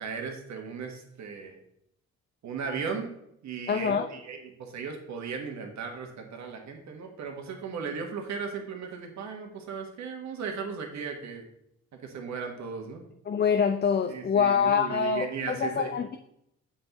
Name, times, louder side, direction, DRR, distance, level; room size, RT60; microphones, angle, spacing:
voice 1, 0.0-1.6 2.4-3.1 3.4-11.4 11.9-13.0 14.1-15.9, right 5 dB, 65° right, 3 dB, 1.4 m, -36 dB
voice 2, 3.7-4.1 13.3-16.2, left 6 dB, 35° left, 7 dB, 0.5 m, -25 dB
7.5 x 5.7 x 3.0 m, 0.77 s
cardioid pair, 90°, 30 cm